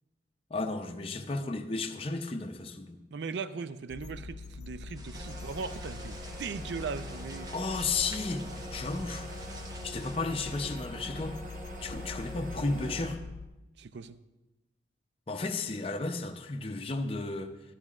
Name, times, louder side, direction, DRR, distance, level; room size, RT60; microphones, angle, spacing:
voice 1, 0.5-3.0 7.5-8.4 8.7-9.3 9.8-11.4 11.8-13.2 15.3-17.5, left 3 dB, 30° left, 5 dB, 0.6 m, -33 dB
voice 2, 3.1-7.5 13.8-14.2, right 5 dB, 70° right, 13 dB, 0.4 m, -39 dB
sound 1, 3.9-13.5, left 3 dB, 75° left, 0.6 m, -43 dB
sound 2, 4.9-10.2, right 2 dB, 20° right, 0.7 m, -50 dB
sound 3, 5.1-13.1, right 1 dB, 45° right, 1.2 m, -44 dB
12.0 x 12.0 x 2.4 m, 1.0 s
head